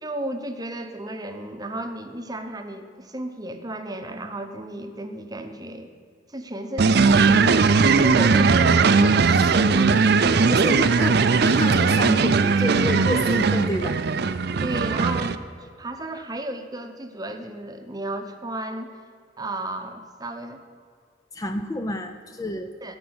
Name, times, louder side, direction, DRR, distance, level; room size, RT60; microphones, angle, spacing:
voice 1, 0.0-5.9 6.3-9.3 10.2-10.7 14.6-15.4 15.8-18.9 19.4-20.6 22.8-23.0, right 1 dB, 20° right, 6 dB, 0.8 m, -33 dB
sound 1, 6.8-15.3, right 4 dB, 60° right, 0.5 m, -19 dB
voice 2, 9.3-10.0 10.5-14.0 21.3-22.7, left 1 dB, 20° left, 7 dB, 0.5 m, -29 dB
15.0 x 5.3 x 7.9 m, 2.3 s
head